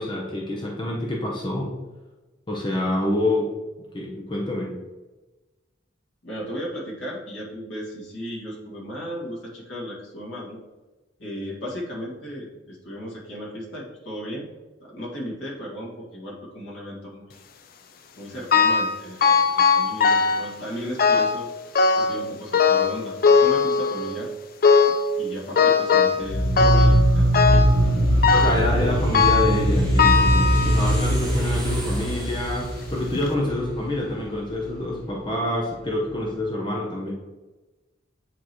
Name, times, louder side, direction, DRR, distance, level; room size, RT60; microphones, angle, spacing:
voice 1, 0.0-1.7 2.5-3.5 3.9-4.7 28.3-37.1, left 1 dB, 25° left, -1 dB, 0.8 m, -27 dB
voice 2, 6.2-10.6 11.2-14.4 14.8-17.4 18.2-21.5 21.9-24.3 25.2-27.9, equal, 80° left, -4 dB, 2.1 m, -35 dB
sound 1, 18.5-19.0 19.2-20.5 21.0-21.4 21.8-22.2 22.5-24.2 24.6-25.1 25.6-26.3 26.6-27.0 27.3-27.8 28.2-28.7 29.1-29.6 30.0-31.1 31.7-31.8 32.6-32.7 33.2-33.3, left 5 dB, 50° left, 0.5 m, -19 dB
sound 2, 26.2-33.5, right 1 dB, 65° right, 0.8 m, -21 dB
sound 3, 27.8-36.3, equal, 5° left, 1.5 m, -39 dB
8.5 x 3.9 x 3.1 m, 1.1 s
head